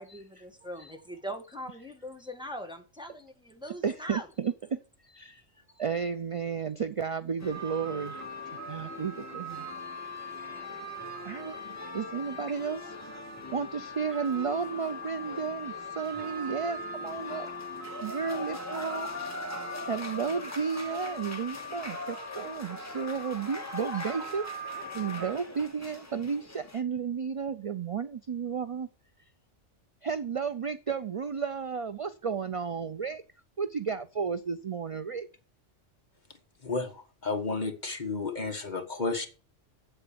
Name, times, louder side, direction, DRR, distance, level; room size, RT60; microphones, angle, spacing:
voice 1, 0.0-4.3, equal, 5° right, 1.5 m, -41 dB
voice 2, 3.8-4.5 5.0-5.4 5.8-8.2 8.7-9.7 11.2-11.6 11.9-13.1 13.5-17.5 18.0-19.1 19.9-28.9 30.0-33.2 33.6-35.3, right 6 dB, 50° right, 0.4 m, -33 dB
sound 1, 7.4-26.8, left 2 dB, 15° left, 1.0 m, -42 dB
sound 2, 7.5-25.3, equal, 30° right, 5.3 m, -42 dB
voice 3, 36.6-39.3, left 3 dB, 40° left, 1.5 m, -32 dB
8.0 x 7.9 x 7.0 m
omnidirectional pair, 1.3 m